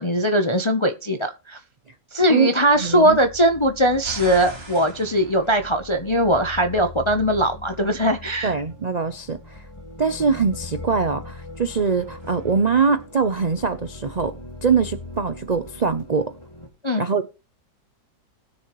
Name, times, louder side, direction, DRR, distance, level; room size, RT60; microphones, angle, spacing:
voice 1, 0.0-1.6 2.1-8.5 16.8-17.0, equal, 40° left, 0.4 m, -20 dB
sound 1, 2.6-16.7, left 2 dB, 15° left, 2.0 m, -41 dB
voice 2, 2.8-3.2 8.4-9.6 10.0-14.3 14.6-16.3 17.0-17.3, right 5 dB, 75° right, 0.3 m, -22 dB
sound 2, 4.0-6.5 11.8-13.8, right 2 dB, 35° right, 2.6 m, -42 dB
20.0 x 6.7 x 3.1 m
omnidirectional pair, 1.8 m